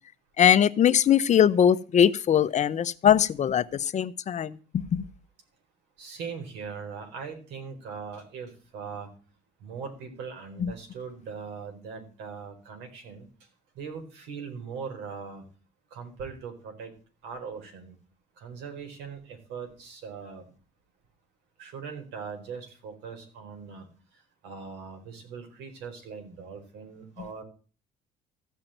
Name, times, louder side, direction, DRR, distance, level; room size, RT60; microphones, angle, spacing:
voice 1, 0.4-4.6 4.9-5.0 10.6-10.7, left 9 dB, 45° left, 0.8 m, -21 dB
voice 2, 6.0-9.1 9.6-13.3 13.7-15.4 15.9-16.9 17.2-18.0 18.4-20.4 21.6-23.9 24.4-27.4, right 5 dB, 90° right, 4.5 m, -40 dB
15.0 x 5.8 x 9.0 m
cardioid pair, 110°, 17 cm